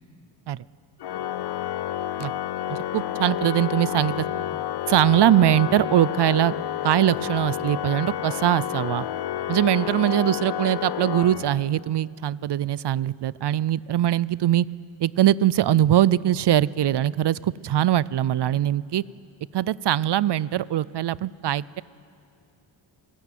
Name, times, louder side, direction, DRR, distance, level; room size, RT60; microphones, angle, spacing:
Organ, 1.0-11.9, left 11 dB, 60° left, 0.5 m, -30 dB
voice 1, 2.7-4.3 4.9-6.5 6.8-9.1 9.5-14.7 15.0-19.0 19.5-21.8, right 12 dB, 60° right, 21 dB, 0.5 m, -22 dB
27.5 x 15.5 x 9.3 m, 2.5 s
wide cardioid pair, 115°, 47 cm